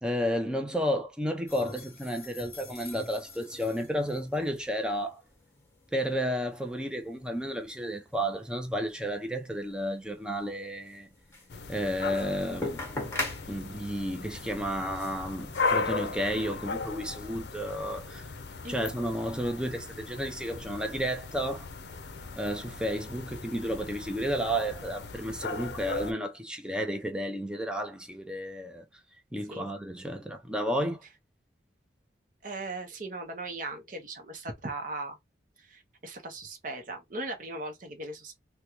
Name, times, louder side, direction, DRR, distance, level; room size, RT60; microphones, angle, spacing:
voice 1, 0.0-5.2 5.9-11.1 11.7-12.9 13.5-18.3 18.7-21.7 22.4-28.8 29.3-31.0, equal, 5° right, 0.6 m, -32 dB
sound 1, 1.5-16.5, left 2 dB, 15° left, 1.1 m, -43 dB
sound 2, 11.5-26.1, left 4 dB, 65° left, 0.5 m, -37 dB
voice 2, 32.4-35.2 35.6-38.4, right 2 dB, 45° right, 0.8 m, -38 dB
3.5 x 2.3 x 3.0 m
head